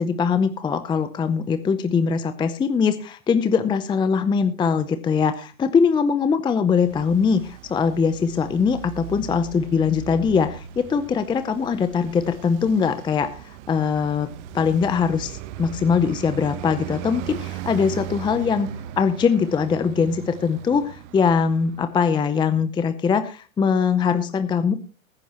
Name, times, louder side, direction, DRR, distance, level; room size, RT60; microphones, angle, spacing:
voice 1, 0.0-14.3 14.5-18.7 19.0-24.7, left 6 dB, 10° left, 10 dB, 0.6 m, -22 dB
Traffic noise roadway noise, 6.7-22.2, right 11 dB, 55° right, 1.0 m, -38 dB
20.0 x 9.9 x 2.9 m, 0.34 s
hypercardioid pair, 125°, 42 cm